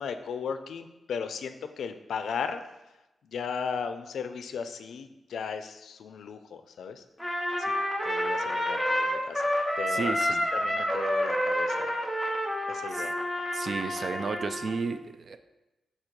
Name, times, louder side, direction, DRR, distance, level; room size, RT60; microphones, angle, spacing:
voice 1, 0.0-2.6 3.2-7.0 7.6-7.7 8.0-9.4 9.8-10.1 10.5-11.9 12.7-13.1, left 6 dB, 90° left, 9 dB, 0.4 m, -36 dB
Trumpet, 7.2-14.8, equal, ahead, 0.6 m, -29 dB
voice 2, 9.9-10.4 12.9-13.1 13.5-15.4, right 4 dB, 45° right, 9 dB, 0.3 m, -33 dB
4.5 x 4.3 x 5.0 m, 1.0 s
wide cardioid pair, 165°, 0 cm